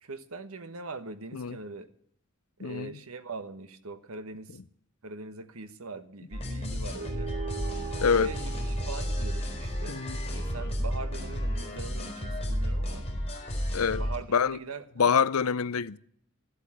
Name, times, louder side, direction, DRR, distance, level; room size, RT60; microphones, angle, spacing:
voice 1, 0.0-1.9 2.6-4.6 5.0-7.3 8.1-10.0 10.3-13.1 13.9-15.1, right 3 dB, 85° right, 1.3 m, -42 dB
voice 2, 2.6-2.9 8.0-8.3 9.9-10.2 13.7-14.0 14.3-14.6 15.0-16.0, left 6 dB, 85° left, 0.6 m, -25 dB
sound 1, 6.3-14.2, equal, 25° left, 4.3 m, -32 dB
sound 2, 6.9-11.7, right 8 dB, 40° right, 1.2 m, -43 dB
14.5 x 8.2 x 9.8 m
head